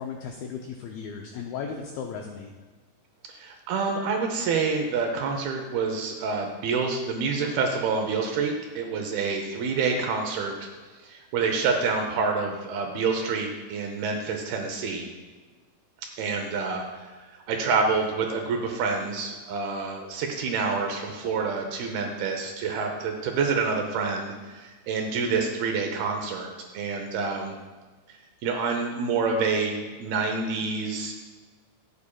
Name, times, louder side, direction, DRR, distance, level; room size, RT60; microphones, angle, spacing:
voice 1, 0.0-2.5, left 6 dB, 90° left, 2 dB, 2.1 m, -36 dB
voice 2, 3.3-10.6 11.0-15.1 16.2-17.1 17.5-27.5 28.4-31.2, right 4 dB, 75° right, 3 dB, 2.4 m, -27 dB
13.5 x 8.4 x 2.3 m, 1.4 s
omnidirectional pair, 5.0 m